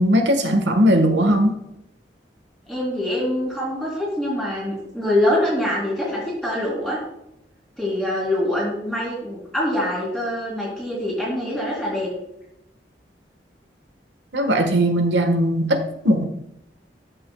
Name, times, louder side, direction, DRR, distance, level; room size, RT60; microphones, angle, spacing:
voice 1, 0.0-1.6 14.3-16.2, equal, 90° right, 6 dB, 1.4 m, -19 dB
voice 2, 2.7-7.0 7.8-12.1, left 1 dB, 5° left, -7 dB, 3.6 m, -24 dB
13.5 x 6.8 x 2.3 m, 0.83 s
head